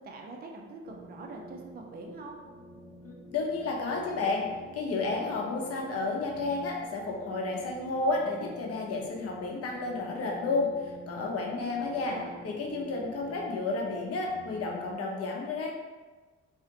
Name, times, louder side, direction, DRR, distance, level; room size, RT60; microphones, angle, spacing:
voice 1, 0.0-2.4 11.7-12.3, right 3 dB, 30° right, 1 dB, 0.4 m, -44 dB
sound 1, 0.8-14.9, right 1 dB, 65° right, 1.2 m, -48 dB
voice 2, 3.0-4.4 4.7-12.1 12.4-15.8, left 3 dB, 50° left, -1 dB, 0.7 m, -31 dB
2.6 x 2.1 x 3.8 m, 1.3 s
cardioid pair, 90°, 30 cm